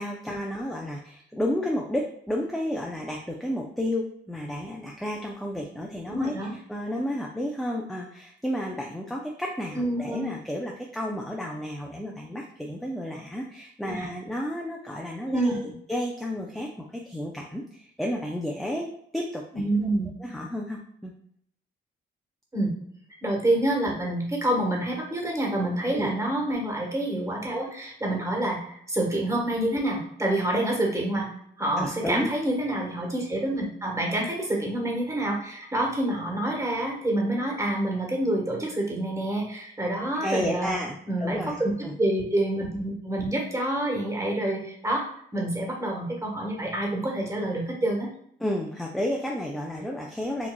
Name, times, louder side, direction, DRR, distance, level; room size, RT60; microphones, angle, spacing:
voice 1, 0.0-6.3 6.7-19.7 20.2-21.1 25.9-26.1 28.1-28.2 31.8-32.3 40.2-41.9 48.4-50.5, left 1 dB, ahead, -1 dB, 0.4 m, -32 dB
voice 2, 6.1-6.6 9.7-10.3 14.0-14.1 15.3-15.5 19.5-20.1 22.5-22.7 23.2-31.3 31.6-40.8 41.1-41.7 42.0-45.0 45.3-48.1, right 1 dB, 15° right, -1 dB, 1.2 m, -27 dB
4.8 x 2.6 x 2.2 m, 0.69 s
cardioid pair, 90°, 20 cm